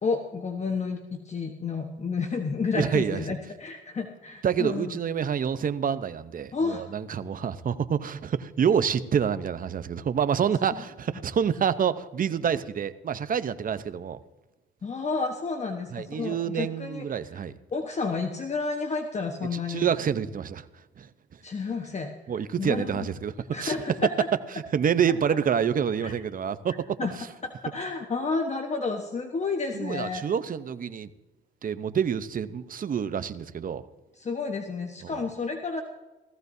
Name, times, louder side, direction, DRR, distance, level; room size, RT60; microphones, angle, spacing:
voice 1, 0.0-4.9 6.5-6.8 14.8-17.1 17.7-19.9 21.4-22.1 22.6-23.1 23.5-24.1 26.0-26.1 27.0-27.1 27.4-30.2 34.2-35.8, left 4 dB, 35° left, 3 dB, 1.2 m, -31 dB
voice 2, 2.7-3.3 4.4-14.2 15.9-17.5 19.5-20.7 21.0-21.1 22.3-23.7 24.7-27.0 29.7-31.1 31.6-33.8 35.0-35.2, right 7 dB, 45° right, 13 dB, 0.8 m, -27 dB
17.0 x 14.5 x 2.7 m, 1.1 s
cardioid pair, 90°, 20 cm